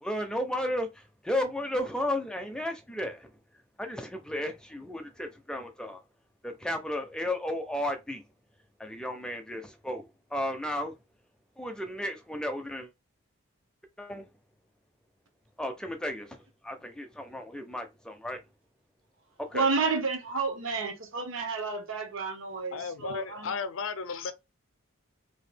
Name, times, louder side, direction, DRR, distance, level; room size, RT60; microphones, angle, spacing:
voice 1, 0.0-3.3 3.8-6.0 6.4-8.2 8.8-10.9 11.6-12.9 14.0-14.3 15.6-18.4 19.4-19.7, left 1 dB, 5° left, 0.4 m, -34 dB
voice 2, 19.5-23.5, right 4 dB, 70° right, 0.8 m, -31 dB
voice 3, 22.7-24.3, left 5 dB, 65° left, 0.5 m, -34 dB
2.8 x 2.3 x 3.3 m
head